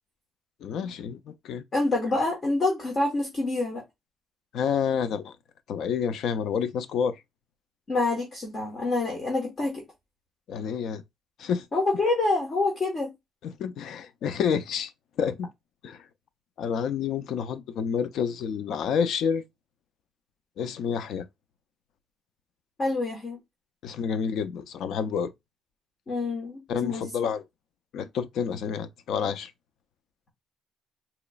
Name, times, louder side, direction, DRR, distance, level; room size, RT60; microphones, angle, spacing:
voice 1, 0.6-1.6 4.5-5.4 5.7-7.2 10.5-11.0 11.4-11.7 13.4-14.9 15.2-15.5 15.8-16.0 16.6-19.4 20.6-21.3 23.8-25.3 26.7-27.4 27.9-29.5, left 7 dB, 60° left, 0.4 m, -29 dB
voice 2, 1.7-3.8 7.9-9.8 11.7-13.1 22.8-23.4 26.1-27.1, left 2 dB, 30° left, 1.1 m, -27 dB
3.9 x 2.9 x 2.3 m
cardioid pair, 155°, 0 cm